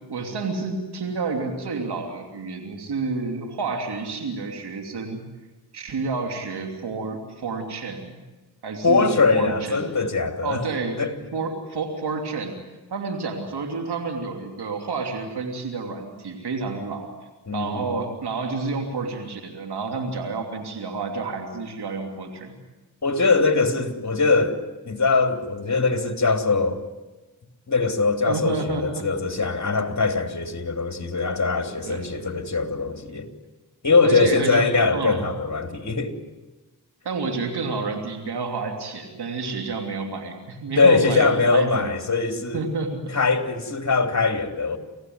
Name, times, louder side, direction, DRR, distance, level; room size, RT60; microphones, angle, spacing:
voice 1, 0.1-5.2 5.7-8.1 8.6-9.9 10.4-11.0 11.3-12.5 12.9-17.1 17.5-22.5 28.3-29.1 31.8-32.1 34.0-35.2 37.0-41.9 42.5-43.1, right 4 dB, 85° right, 3.1 m, -29 dB
voice 2, 8.8-10.6 11.0-11.1 17.5-17.9 23.0-26.8 27.7-33.3 33.8-36.1 40.8-42.6 43.1-44.8, left 4 dB, 45° left, 3.1 m, -22 dB
26.5 x 16.5 x 9.5 m
cardioid pair, 45°, 39 cm